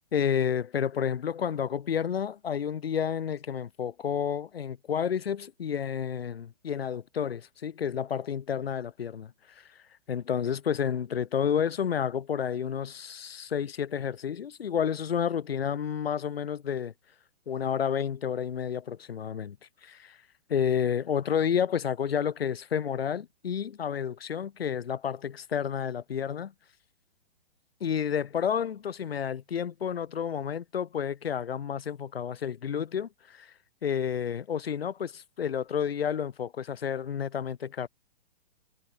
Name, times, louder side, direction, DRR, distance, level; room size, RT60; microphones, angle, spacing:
voice 1, 0.1-9.3 10.1-16.9 17.5-19.6 19.8-20.2 20.5-26.5 27.8-33.5 33.8-37.9, left 8 dB, 75° left, 3.2 m, -30 dB
hypercardioid pair, 170°, 30 cm